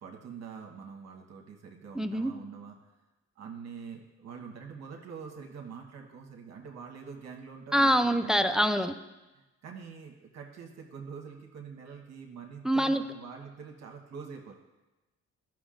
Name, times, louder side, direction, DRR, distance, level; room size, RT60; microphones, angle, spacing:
voice 1, 0.0-2.8 3.4-8.6 9.3-14.5, right 6 dB, 60° right, 1 dB, 1.2 m, -45 dB
voice 2, 2.0-2.3 7.7-8.9 12.6-13.0, equal, ahead, 9 dB, 0.4 m, -25 dB
13.5 x 6.1 x 2.5 m, 1.1 s
cardioid pair, 90°, 30 cm